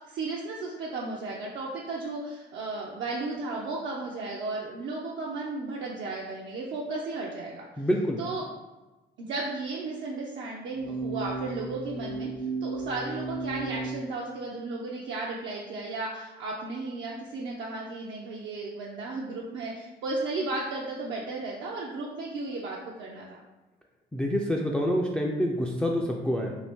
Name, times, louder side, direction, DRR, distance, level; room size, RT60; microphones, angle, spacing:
voice 1, 0.1-7.6 8.2-8.4 9.2-12.3 12.6-23.4, right 3 dB, 70° right, -3 dB, 0.5 m, -34 dB
voice 2, 7.8-8.2 24.1-26.6, equal, 5° left, 0 dB, 0.3 m, -27 dB
sound 1, 10.7-14.0, right 3 dB, 60° left, 0.7 m, -34 dB
2.7 x 2.5 x 3.5 m, 1.1 s
cardioid pair, 90°, 20 cm